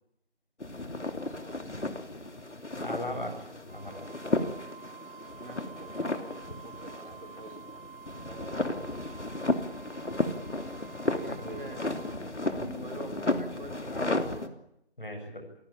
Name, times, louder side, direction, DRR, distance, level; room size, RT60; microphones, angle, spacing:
sound 1, 0.6-14.5, left 2 dB, 85° left, 3.0 m, -34 dB
voice 1, 2.8-4.2 11.4-11.5 15.0-15.4, left 1 dB, 50° left, 5 dB, 7.1 m, -38 dB
Wind instrument woodwind instrument, 3.7-12.2, right 8 dB, 10° right, 2.8 m, -50 dB
voice 2, 5.4-7.6 8.3-8.7 11.2-14.5, right 1 dB, 50° right, 3 dB, 4.7 m, -46 dB
28.0 x 17.5 x 8.8 m, 0.79 s
figure-of-eight pair, 180°, 34 cm